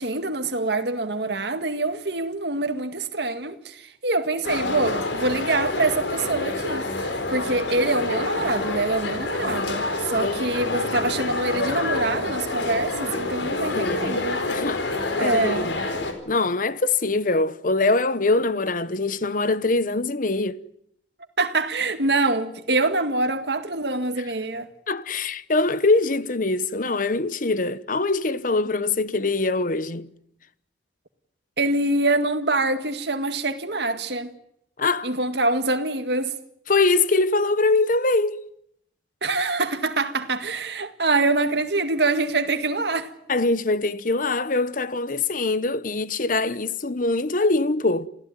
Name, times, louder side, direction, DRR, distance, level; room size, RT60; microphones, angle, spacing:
voice 1, 0.0-14.4 15.2-15.7 21.4-24.7 31.6-34.3 35.0-36.3 39.2-43.1, right 2 dB, 65° right, 2.0 m, -25 dB
sound 1, 4.4-16.1, left 2 dB, 85° left, 4.6 m, -27 dB
voice 2, 13.7-14.8 15.2-15.8 16.3-20.6 24.9-30.1 34.8-35.1 36.7-38.4 43.3-48.1, left 3 dB, 45° left, 1.0 m, -23 dB
28.5 x 16.0 x 9.7 m
head